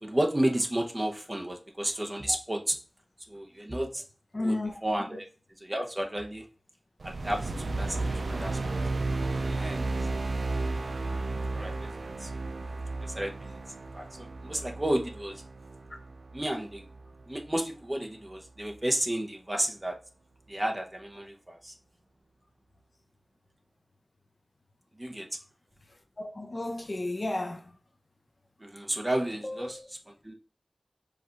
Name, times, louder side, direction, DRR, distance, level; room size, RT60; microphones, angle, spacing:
voice 1, 0.0-2.8 3.3-4.0 4.4-5.3 5.6-6.4 7.0-7.5 7.8-8.8 9.4-10.1 11.5-12.3 13.0-13.6 13.9-15.4 16.3-16.8 17.3-20.0 20.5-21.7 25.0-25.3 28.6-30.3, right 1 dB, 25° right, 0.8 m, -32 dB
voice 2, 4.3-4.7 26.2-27.6 29.4-29.9, left 2 dB, 45° left, 0.6 m, -33 dB
sound 1, 7.0-17.5, right 3 dB, 85° right, 0.4 m, -33 dB
4.8 x 2.5 x 4.4 m
wide cardioid pair, 70°, 0 cm